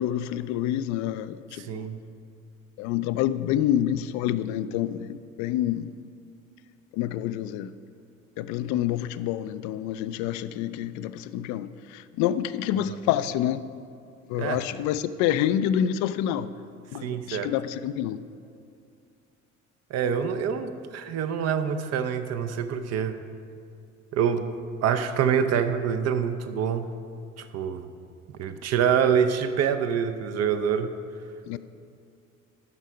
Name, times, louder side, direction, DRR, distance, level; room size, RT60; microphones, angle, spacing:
voice 1, 0.0-1.8 2.8-5.9 6.9-7.7 8.4-13.6 14.3-16.5 16.9-18.2 31.5-31.6, left 11 dB, 50° left, 14 dB, 0.4 m, -27 dB
voice 2, 1.6-2.0 14.4-14.6 17.0-17.5 19.9-23.2 24.1-24.5 24.8-26.9 27.4-27.9 28.3-30.9, right 7 dB, 40° right, 9 dB, 0.7 m, -26 dB
9.6 x 6.4 x 5.2 m, 2.4 s
figure-of-eight pair, 50°, 39 cm